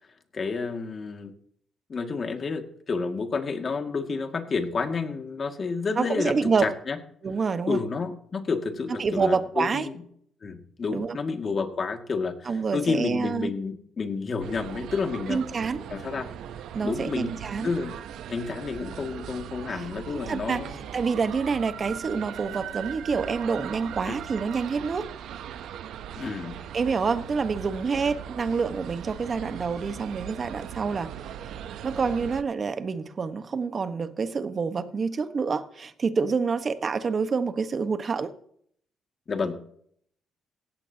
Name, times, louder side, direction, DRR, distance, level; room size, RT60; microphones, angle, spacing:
voice 1, 0.3-1.3 1.9-6.3 6.6-7.0 7.7-10.0 10.4-15.4 15.9-16.3 16.8-17.4 17.6-17.9 18.3-20.8 24.0-24.2 26.1-26.5 39.3-39.6, left 4 dB, 40° left, 5 dB, 2.1 m, -30 dB
voice 2, 6.0-6.7 7.2-7.8 9.0-9.9 10.9-11.2 12.4-13.5 15.3-15.8 16.7-17.7 19.7-19.8 20.1-20.6 20.9-25.1 26.7-31.1 31.8-38.3, right 5 dB, 40° right, 10 dB, 1.2 m, -27 dB
sound 1, 14.4-32.4, right 9 dB, 80° right, 0.8 m, -39 dB
17.0 x 15.5 x 2.9 m, 0.65 s
cardioid pair, 90°, 0 cm